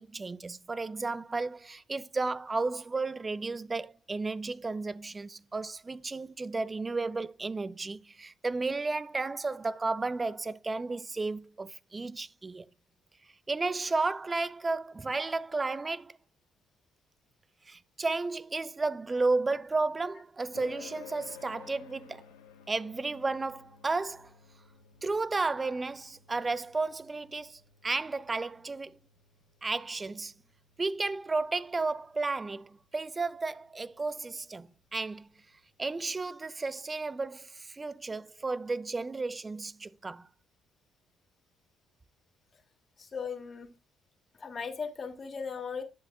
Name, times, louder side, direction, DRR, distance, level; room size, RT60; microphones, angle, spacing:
voice 1, 0.0-12.6 13.5-16.2 17.7-22.2 22.7-24.3 25.0-28.9 29.6-30.3 30.8-35.3 35.8-40.3, right 3 dB, 30° right, 0.5 m, -33 dB
sound 1, 20.5-35.5, left 8 dB, 85° left, 1.4 m, -55 dB
voice 2, 43.0-43.7 44.4-45.8, left 5 dB, 40° left, 2.1 m, -37 dB
11.5 x 7.5 x 2.3 m
hypercardioid pair, 50°, 0 cm